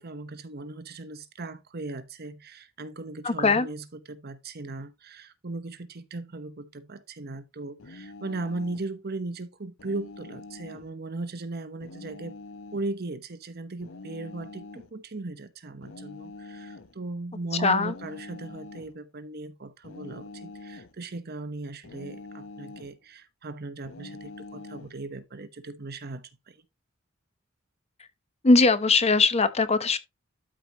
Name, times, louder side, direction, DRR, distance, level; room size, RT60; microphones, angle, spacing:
voice 1, 0.0-12.4 12.7-26.6, right 2 dB, 50° right, 1.0 m, -38 dB
voice 2, 3.2-3.7 17.5-17.9 28.4-30.0, left 3 dB, 30° left, 0.9 m, -21 dB
sound 1, 7.8-8.9 9.8-10.9 11.8-12.9 13.8-14.9 15.8-17.0 17.8-19.0 19.8-21.0 21.8-23.0 23.8-25.0, left 3 dB, 75° left, 0.9 m, -44 dB
12.5 x 4.8 x 2.9 m
head